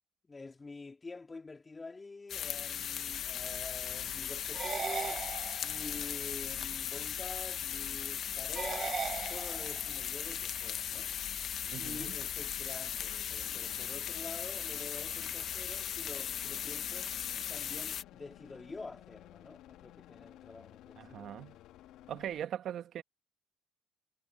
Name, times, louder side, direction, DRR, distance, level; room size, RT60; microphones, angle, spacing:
voice 1, 0.2-5.2 5.6-9.0 9.3-11.1 11.7-21.4, left 3 dB, 25° left, 4.0 m, -47 dB
sound 1, 2.3-18.0, left 9 dB, 60° left, 1.2 m, -38 dB
sound 2, 3.1-22.4, left 13 dB, 75° left, 2.1 m, -54 dB
sound 3, 4.5-6.0 8.5-10.0, right 7 dB, 45° right, 0.8 m, -38 dB
voice 2, 11.7-12.1 21.0-21.6 22.1-23.0, right 10 dB, 60° right, 1.7 m, -40 dB
supercardioid pair, 75°, 0 cm